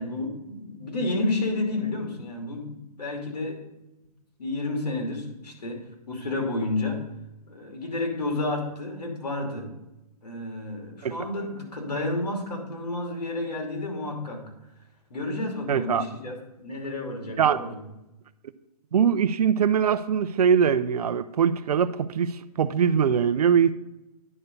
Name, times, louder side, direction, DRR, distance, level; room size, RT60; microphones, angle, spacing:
voice 1, 0.0-3.6 4.4-7.0 7.5-9.7 10.2-14.4 15.1-17.8, left 2 dB, 90° left, 1 dB, 2.8 m, -31 dB
voice 2, 15.7-16.1 17.4-17.6 18.9-23.7, right 7 dB, 70° right, 11 dB, 0.6 m, -22 dB
9.9 x 4.4 x 6.6 m, 0.95 s
hypercardioid pair, 155°, 20 cm